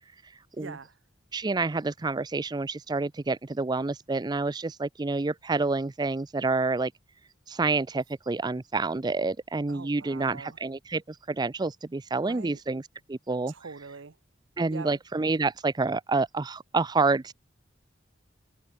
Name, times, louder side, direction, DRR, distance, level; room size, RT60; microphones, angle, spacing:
voice 1, 0.6-1.0 9.7-10.6 12.2-12.6 13.5-14.2 14.7-14.9, right 4 dB, 70° right, 0.8 m, -43 dB
voice 2, 1.3-6.9 7.5-12.8 13.1-13.5 14.6-17.3, right 3 dB, 20° right, 0.4 m, -28 dB
open air
head